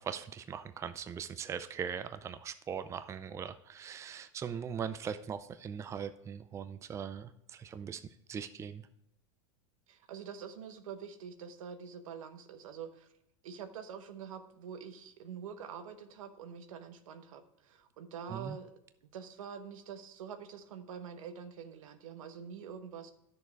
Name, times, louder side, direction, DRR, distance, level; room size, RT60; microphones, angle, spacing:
voice 1, 0.0-8.0 8.3-8.9 18.3-18.6, right 7 dB, 15° right, 11 dB, 0.5 m, -40 dB
voice 2, 9.9-13.1 13.4-18.7 19.1-23.1, right 7 dB, 85° right, 8 dB, 1.2 m, -46 dB
10.0 x 6.7 x 4.6 m, 0.79 s
supercardioid pair, 130°, 17 cm